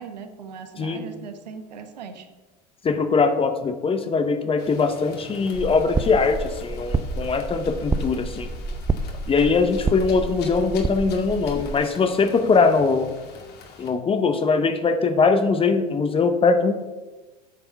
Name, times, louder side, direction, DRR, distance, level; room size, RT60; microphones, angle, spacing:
voice 1, 0.0-2.3, right 6 dB, 90° right, 7 dB, 1.2 m, -39 dB
voice 2, 2.8-8.5 9.3-13.1 13.8-16.7, left 4 dB, 25° left, 9 dB, 0.9 m, -21 dB
sound 1, 4.6-13.9, left 5 dB, 55° left, 2.1 m, -45 dB
sound 2, 5.5-11.8, right 3 dB, 15° right, 0.5 m, -29 dB
9.3 x 5.8 x 5.8 m, 1.2 s
hypercardioid pair, 90°, 21 cm